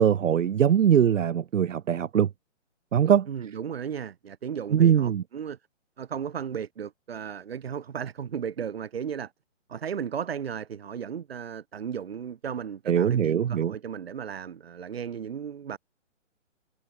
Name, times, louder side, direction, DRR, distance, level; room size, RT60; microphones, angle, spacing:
voice 1, 0.0-2.3 2.9-3.3 4.7-5.2 12.9-13.7, right 9 dB, 85° right, 0.8 m, -21 dB
voice 2, 3.3-5.6 6.0-9.3 9.7-15.8, right 7 dB, 50° right, 3.7 m, -35 dB
hypercardioid pair, 165°, 37 cm